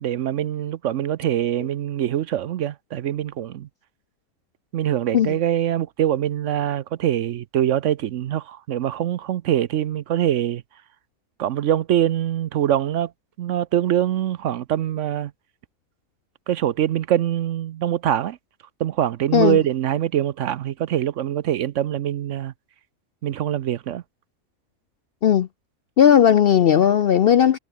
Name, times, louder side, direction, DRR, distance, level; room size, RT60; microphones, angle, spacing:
voice 1, 0.0-3.7 4.7-10.6 11.4-13.1 13.4-15.3 16.5-18.4 18.8-22.5 23.2-24.0, right 11 dB, 65° right, 0.9 m, -23 dB
voice 2, 26.0-27.6, left 9 dB, 60° left, 0.6 m, -16 dB
omnidirectional pair, 1.5 m